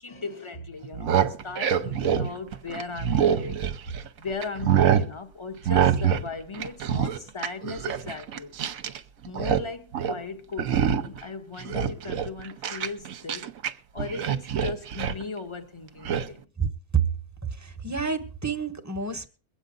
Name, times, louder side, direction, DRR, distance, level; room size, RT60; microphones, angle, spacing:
voice 1, 0.0-8.5 9.2-13.5 13.9-16.5, left 4 dB, 20° left, 1.1 m, -37 dB
sound 1, 0.8-4.1 4.4-5.1 5.7-6.3 6.5-9.0 9.2-9.7 9.9-10.2 10.6-11.2 11.6-13.7 14.0-15.2 16.1-16.3, right 8 dB, 70° right, 1.2 m, -25 dB
voice 2, 17.4-19.3, right 6 dB, 15° right, 1.1 m, -28 dB
22.5 x 8.3 x 3.8 m
omnidirectional pair, 1.5 m